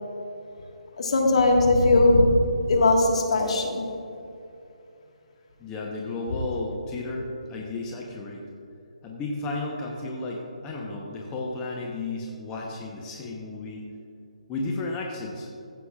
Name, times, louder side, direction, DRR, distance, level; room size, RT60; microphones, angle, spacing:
voice 1, 1.0-3.9, left 2 dB, 55° left, 1 dB, 1.6 m, -20 dB
voice 2, 5.6-8.4 9.0-13.8 14.5-15.5, left 2 dB, 15° left, -2 dB, 0.8 m, -33 dB
14.5 x 8.0 x 2.4 m, 2.7 s
figure-of-eight pair, 150°, 4 cm